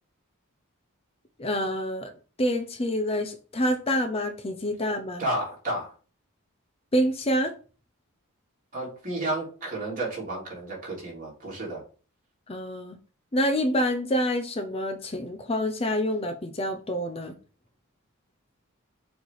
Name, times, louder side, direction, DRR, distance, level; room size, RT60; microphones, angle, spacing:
voice 1, 1.4-2.1 2.4-5.3 6.9-7.5 12.5-13.0 13.3-17.3, equal, 25° left, 6 dB, 0.7 m, -27 dB
voice 2, 5.2-5.9 8.7-11.8, right 1 dB, 40° right, -4 dB, 3.1 m, -31 dB
6.7 x 3.4 x 4.6 m, 0.38 s
head